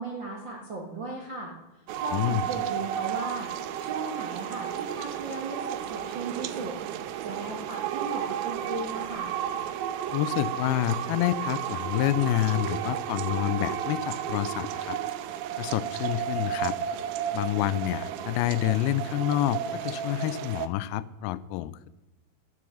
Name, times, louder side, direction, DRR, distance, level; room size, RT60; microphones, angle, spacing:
voice 1, 0.0-1.5 2.0-3.5 3.8-6.7 7.2-9.3, right 3 dB, 65° right, -2 dB, 1.1 m, -36 dB
sound 1, 1.9-20.7, right 10 dB, 85° right, 2.4 m, -33 dB
voice 2, 2.1-2.4 10.1-15.0 15.6-16.8 17.3-21.9, left 13 dB, 85° left, 16 dB, 2.4 m, -28 dB
11.0 x 10.5 x 6.3 m, 1.0 s
omnidirectional pair, 4.4 m